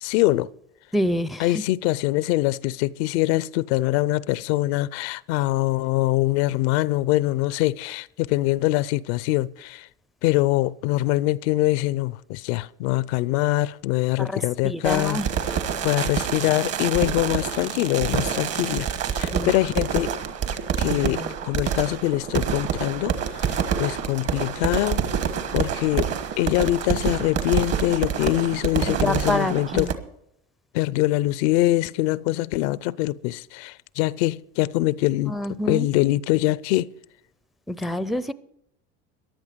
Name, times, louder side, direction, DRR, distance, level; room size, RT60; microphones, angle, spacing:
voice 1, 0.0-0.5 1.4-9.9 10.2-15.2 15.8-18.9 19.1-20.1 20.8-25.0 25.5-26.1 26.4-29.9 30.7-35.4 35.7-36.9, left 17 dB, 85° left, 0.5 m, -23 dB
voice 2, 0.9-1.5 14.2-15.3 19.3-19.5 21.0-21.3 28.9-29.9 35.3-35.9 37.7-38.3, left 1 dB, ahead, 0.4 m, -27 dB
sound 1, 14.8-29.9, right 7 dB, 50° right, 1.4 m, -27 dB
15.0 x 10.5 x 5.2 m
supercardioid pair, 110°, 32 cm